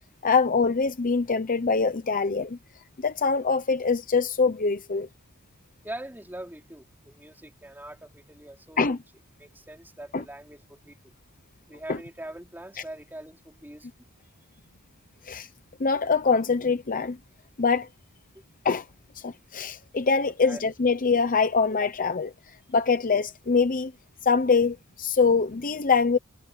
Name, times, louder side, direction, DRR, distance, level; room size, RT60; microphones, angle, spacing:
voice 1, 0.2-2.6 3.0-5.1 8.8-9.0 10.1-10.2 11.9-12.0 15.2-15.5 15.8-17.2 17.6-17.9 18.6-18.9 19.2-22.3 22.7-23.9 24.2-26.2, left 5 dB, 40° left, 0.8 m, -24 dB
voice 2, 5.8-9.0 9.4-11.1 11.7-13.9 18.3-18.4 20.4-20.6, right 1 dB, 10° right, 4.8 m, -42 dB
head